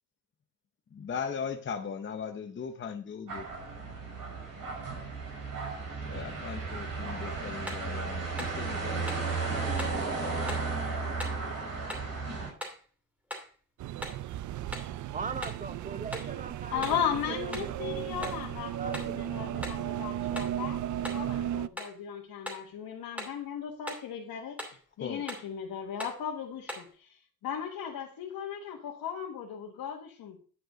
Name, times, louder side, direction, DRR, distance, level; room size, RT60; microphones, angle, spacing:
voice 1, 0.9-3.5 6.0-10.3 25.0-25.2, left 6 dB, 35° left, 0.7 m, -39 dB
sound 1, 3.3-12.5, right 4 dB, 80° right, 4.7 m, -34 dB
sound 2, 7.7-7.9 8.4-8.6 9.1-9.3 9.8-10.0 10.5-10.7 11.2-11.4 11.9-12.1 12.6-12.9 13.3-13.5 14.0-14.2 14.7-15.0 15.4-15.6 16.1-16.4 16.8-17.1 17.5-17.8 18.2-18.5 18.9-19.2 19.6-19.9 20.4-20.6 21.0-21.3 21.8-22.0 22.5-22.7 23.2-23.4 23.9-24.1 24.6-24.8 25.3-25.5 26.0-26.2 26.7-26.9, left 1 dB, 5° right, 2.7 m, -40 dB
sound 3, 13.8-21.7, right 11 dB, 60° right, 0.4 m, -35 dB
voice 2, 15.1-17.1 17.4-18.3 18.8-19.4, right 4 dB, 25° right, 0.7 m, -40 dB
voice 3, 16.7-20.8 21.1-30.4, left 8 dB, 85° left, 1.5 m, -36 dB
10.0 x 5.4 x 5.0 m
cardioid pair, 135°, 34 cm